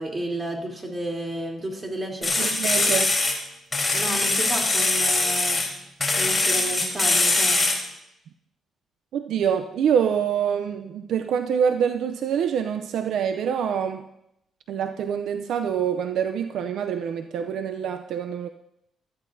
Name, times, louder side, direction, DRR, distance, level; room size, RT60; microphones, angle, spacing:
voice 1, 0.0-2.3 3.9-5.6 6.2-7.6, right 1 dB, 25° right, 0 dB, 3.3 m, -32 dB
sound 1, 2.2-3.4 3.7-5.7 6.0-7.8, left 2 dB, 20° left, 3.7 m, -22 dB
voice 2, 2.4-3.1 9.1-14.0 14.7-18.5, right 8 dB, 75° right, 7 dB, 0.5 m, -25 dB
17.0 x 13.5 x 2.7 m, 0.82 s
cardioid pair, 90°, 0 cm